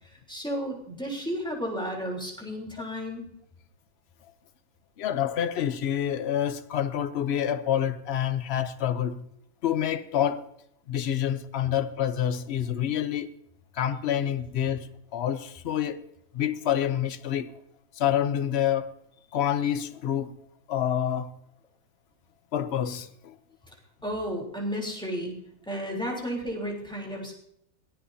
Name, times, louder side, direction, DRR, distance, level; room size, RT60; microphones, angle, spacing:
voice 1, 0.3-3.3 24.0-25.3 25.7-27.3, equal, 5° left, 3.5 m, -32 dB
voice 2, 5.0-9.2 9.6-10.5 10.9-13.3 13.7-14.9 15.1-16.0 16.3-17.6 18.0-18.9 19.3-20.3 20.7-21.3 22.5-23.4, left 10 dB, 55° left, 0.9 m, -27 dB
22.5 x 15.5 x 2.8 m
omnidirectional pair, 1.5 m